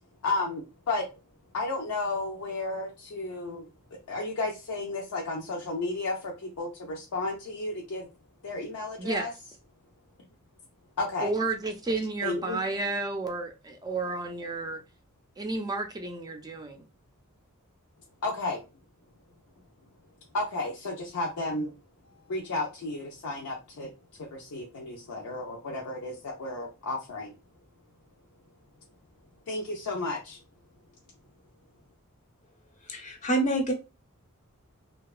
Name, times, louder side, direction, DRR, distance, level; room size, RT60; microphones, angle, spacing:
voice 1, 0.2-1.1 1.5-3.7 4.1-8.1 8.4-9.3 11.0-11.3 12.2-12.6 18.2-18.6 20.3-21.7 22.3-23.9 24.2-27.3 29.5-30.4, left 2 dB, 80° left, 0.5 m, -33 dB
voice 2, 9.0-9.3 11.2-14.8 15.4-16.9, right 3 dB, 20° right, 0.4 m, -31 dB
voice 3, 32.9-33.7, right 1 dB, 35° left, 0.6 m, -26 dB
2.7 x 2.2 x 2.3 m
head